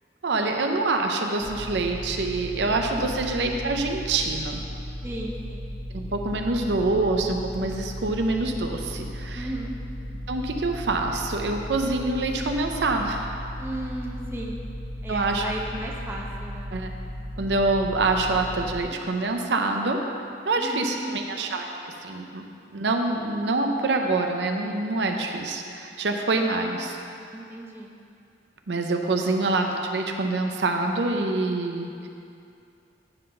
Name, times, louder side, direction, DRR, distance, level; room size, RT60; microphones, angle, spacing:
voice 1, 0.2-4.6 5.9-9.5 10.3-13.3 15.1-15.5 16.7-16.9 17.4-20.0 20.5-22.4 22.7-27.0 28.7-32.1, right 2 dB, 75° right, 3 dB, 0.6 m, -26 dB
sound 1, 1.4-18.8, equal, 65° left, 0.9 m, -36 dB
voice 2, 2.8-3.1 5.0-5.7 9.3-9.8 13.6-14.6 15.0-16.7 20.6-21.3 27.3-27.9 29.2-29.3, right 1 dB, 15° right, -2 dB, 0.6 m, -35 dB
9.9 x 3.9 x 5.5 m, 2.6 s
head